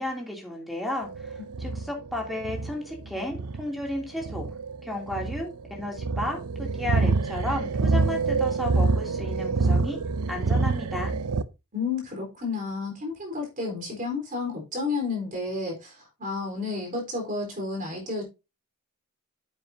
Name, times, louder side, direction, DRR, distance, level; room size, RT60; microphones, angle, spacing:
voice 1, 0.0-4.5 4.8-10.0 10.3-11.1, left 1 dB, ahead, 2.8 m, -33 dB
sound 1, 1.0-11.4, right 3 dB, 90° right, 0.6 m, -27 dB
voice 2, 11.7-18.2, left 3 dB, 40° right, 3.9 m, -31 dB
9.5 x 8.0 x 2.7 m
head